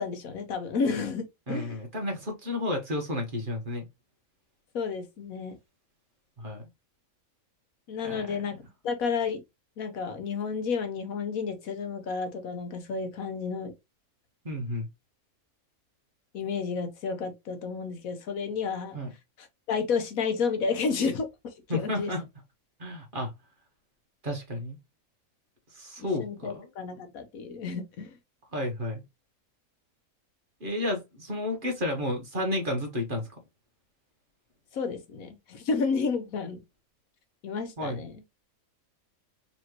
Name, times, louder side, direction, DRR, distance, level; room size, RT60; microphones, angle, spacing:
voice 1, 0.0-1.8 4.7-5.6 7.9-9.4 9.8-13.7 16.3-19.0 19.4-21.3 21.7-22.1 26.0-28.1 34.7-36.6 37.4-38.1, left 5 dB, 75° left, 1.3 m, -31 dB
voice 2, 1.5-3.8 6.4-6.6 8.0-8.3 14.4-14.9 18.9-19.1 21.7-22.2 22.8-23.3 24.2-24.8 25.7-26.5 28.5-29.0 30.6-33.3 37.8-38.0, left 1 dB, 40° right, 1.3 m, -31 dB
4.3 x 3.1 x 2.9 m
omnidirectional pair, 1.5 m